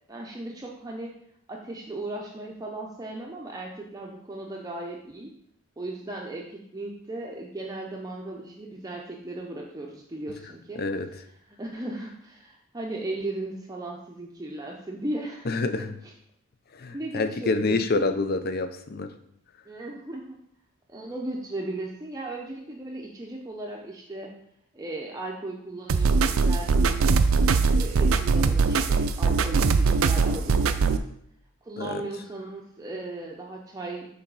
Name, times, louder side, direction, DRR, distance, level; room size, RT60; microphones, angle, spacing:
voice 1, 0.1-1.1 1.5-5.3 5.8-10.8 11.5-15.5 15.8-16.1 16.9-18.1 19.7-20.4 20.9-24.3 24.7-27.0 27.8-31.0 31.6-34.1, right 2 dB, 15° right, -1 dB, 0.6 m, -36 dB
voice 2, 15.5-15.9 16.7-19.1 31.8-32.0, left 3 dB, 45° left, 8 dB, 0.5 m, -27 dB
sound 1, 25.9-31.0, right 4 dB, 80° right, 0.4 m, -21 dB
6.2 x 3.9 x 4.7 m, 0.72 s
head